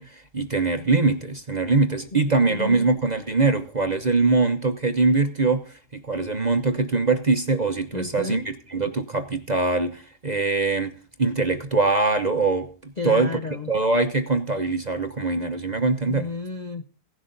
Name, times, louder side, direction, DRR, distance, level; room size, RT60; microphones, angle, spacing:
voice 1, 0.0-8.4 8.7-13.4 13.7-16.3, right 3 dB, 30° right, 0.9 m, -23 dB
voice 2, 2.1-2.9 7.9-8.5 13.0-13.7 16.1-16.9, left 3 dB, 35° left, 0.7 m, -32 dB
17.0 x 11.0 x 3.9 m
omnidirectional pair, 1.7 m